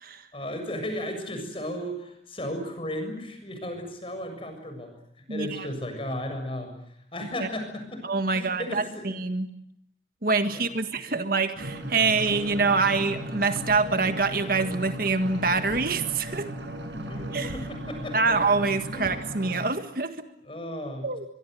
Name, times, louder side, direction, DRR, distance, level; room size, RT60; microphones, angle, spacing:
voice 1, 0.3-4.9 5.3-6.7 7.1-8.1 8.3-9.1 10.4-10.6 11.1-11.2 16.9-18.4 18.9-19.1 20.4-21.1, left 1 dB, 30° left, 5 dB, 7.2 m, -35 dB
voice 2, 5.3-5.7 8.0-9.5 10.2-16.5 17.3-17.5 18.1-20.3 21.0-21.2, right 4 dB, 55° right, 8 dB, 1.7 m, -25 dB
sound 1, 11.5-19.6, equal, 85° right, 5.9 m, -36 dB
24.5 x 23.0 x 9.3 m, 0.73 s
head